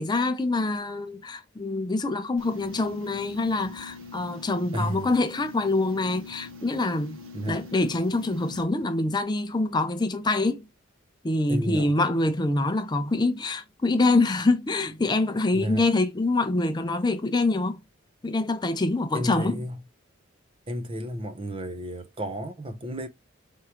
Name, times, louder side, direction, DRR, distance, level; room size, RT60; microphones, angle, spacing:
voice 1, 0.0-7.2 7.5-10.7 11.2-17.8 18.2-19.6, left 2 dB, 20° left, 0.5 m, -25 dB
sound 1, 2.4-8.6, left 3 dB, 80° right, 1.0 m, -44 dB
voice 2, 4.7-5.1 7.3-7.6 11.5-11.9 15.5-15.8 19.1-19.8 20.7-23.1, equal, 25° right, 0.6 m, -32 dB
4.5 x 3.6 x 2.9 m
head